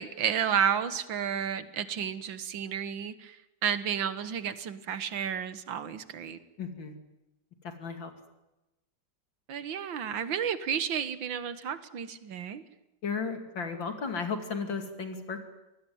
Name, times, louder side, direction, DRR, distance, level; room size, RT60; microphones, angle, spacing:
voice 1, 0.0-6.4 9.5-12.6, right 8 dB, 90° right, 13 dB, 2.1 m, -32 dB
voice 2, 6.6-6.9 7.6-8.1 13.0-15.4, left 5 dB, 85° left, 6 dB, 3.3 m, -34 dB
25.0 x 19.5 x 9.4 m, 0.99 s
omnidirectional pair, 2.0 m